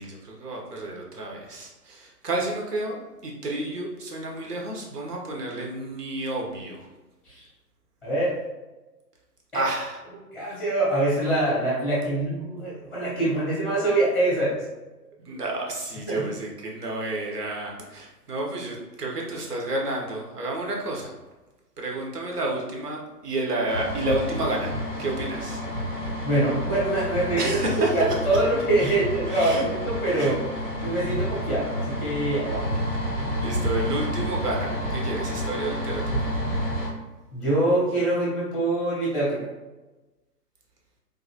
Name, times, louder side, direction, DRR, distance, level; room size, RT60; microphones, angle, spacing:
voice 1, 0.0-3.0 3.2-6.9 9.5-10.0 15.2-21.1 21.8-24.7 25.0-25.6 27.4-28.0 28.8-29.0 29.3-29.6 30.2-30.3 33.4-36.3, right 2 dB, 70° right, -1 dB, 1.2 m, -30 dB
voice 2, 10.3-14.6 16.1-16.2 26.2-27.6 27.9-30.4 30.8-32.7 37.3-39.5, right 1 dB, ahead, -6 dB, 0.9 m, -24 dB
sound 1, 23.7-36.9, equal, 15° left, 0.5 m, -30 dB
3.8 x 2.7 x 2.8 m, 1.1 s
figure-of-eight pair, 135°, 49 cm